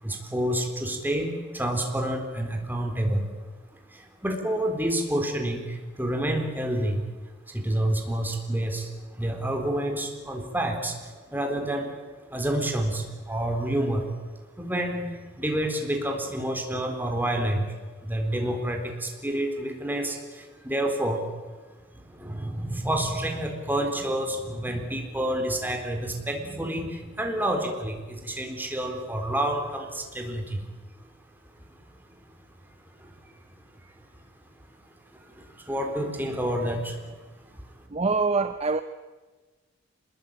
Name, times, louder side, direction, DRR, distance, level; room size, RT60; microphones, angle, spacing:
voice 1, 0.0-3.3 3.9-7.1 7.5-11.9 12.3-14.1 14.6-17.7 18.0-21.3 21.9-30.7 31.0-31.1 33.0-33.3 35.1-37.7, right 1 dB, 10° right, 4.0 m, -29 dB
voice 2, 37.9-38.8, right 4 dB, 30° right, 0.7 m, -24 dB
26.0 x 21.0 x 8.8 m
head